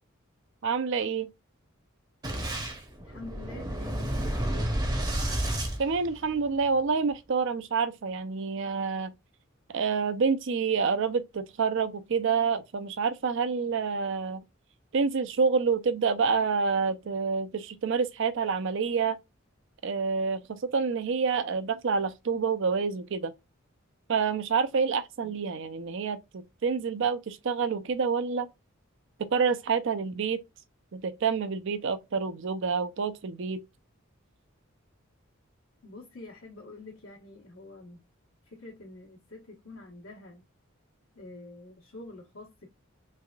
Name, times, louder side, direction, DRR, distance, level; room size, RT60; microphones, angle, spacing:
voice 1, 0.6-1.3 5.8-9.1 9.7-14.4 14.9-19.2 19.8-23.3 24.1-28.5 29.2-30.4 30.9-33.6, right 5 dB, 65° right, 0.5 m, -28 dB
Boom, 2.2-6.6, right 1 dB, 20° right, 0.7 m, -31 dB
voice 2, 3.0-5.3 25.2-25.3 35.8-38.1 38.5-40.4 41.1-42.7, left 2 dB, 80° left, 1.1 m, -47 dB
3.4 x 3.4 x 2.3 m
head